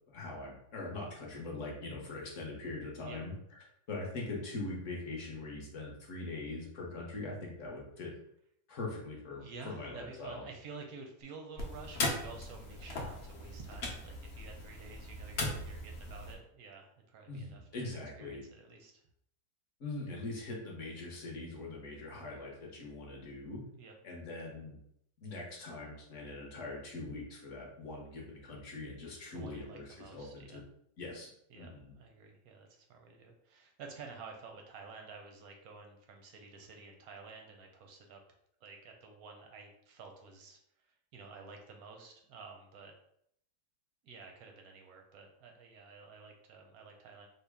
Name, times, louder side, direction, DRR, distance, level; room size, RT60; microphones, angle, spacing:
voice 1, 0.1-3.3 3.9-8.1 8.7-10.4 17.3-18.4 19.8-23.6 24.0-24.8 25.2-29.8 30.1-30.6 31.0-31.3 31.5-31.9, left 2 dB, 55° left, -2 dB, 0.9 m, -42 dB
voice 2, 9.3-17.9 18.2-19.0 23.8-23.9 29.3-30.6 31.5-38.2 38.6-40.6 41.1-42.9 44.0-47.3, right 4 dB, 70° right, 2 dB, 0.9 m, -51 dB
sound 1, 11.6-16.4, left 2 dB, 75° left, 0.6 m, -39 dB
3.8 x 2.0 x 3.4 m, 0.72 s
omnidirectional pair, 2.0 m